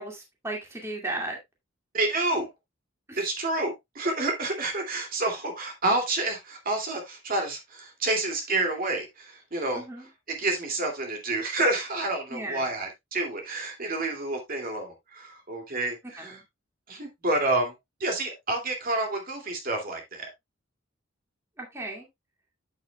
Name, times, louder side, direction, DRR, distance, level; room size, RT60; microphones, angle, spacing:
voice 1, 0.0-1.4 3.1-3.2 9.7-10.1 12.3-12.7 16.2-16.4 21.6-22.1, right 2 dB, 15° right, 2.2 m, -35 dB
voice 2, 1.9-2.5 3.2-9.8 10.3-16.4 16.9-17.7 18.0-20.3, right 2 dB, 45° right, 2.4 m, -29 dB
8.7 x 8.3 x 2.3 m
head